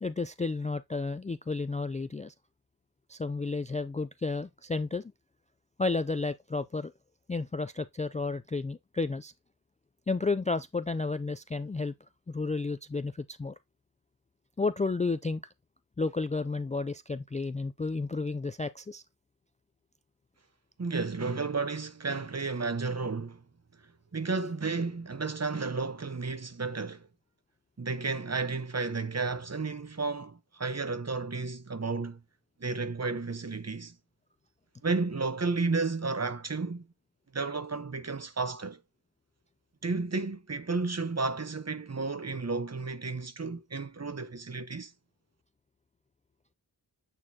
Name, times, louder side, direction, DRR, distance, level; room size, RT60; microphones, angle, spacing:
voice 1, 0.0-2.3 3.1-5.1 5.8-6.9 7.3-9.3 10.1-11.9 12.3-13.5 14.6-15.4 16.0-19.0, left 3 dB, 20° left, 0.3 m, -32 dB
voice 2, 20.8-23.4 24.1-27.1 27.8-32.2 32.6-33.9 34.8-36.9 37.3-38.8 39.8-44.9, right 4 dB, 35° right, 0.9 m, -32 dB
8.7 x 4.0 x 2.8 m
cardioid pair, 40°, 43 cm